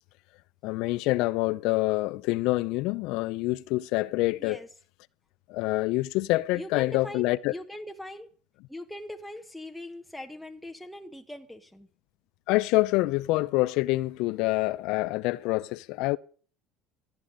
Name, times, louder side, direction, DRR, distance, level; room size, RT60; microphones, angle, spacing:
voice 1, 0.6-4.6 5.5-7.5 12.5-16.2, left 20 dB, 75° left, 0.6 m, -26 dB
voice 2, 6.5-8.3 8.7-11.9, left 1 dB, ahead, 1.3 m, -41 dB
15.0 x 10.5 x 6.5 m
supercardioid pair, 105°, 0 cm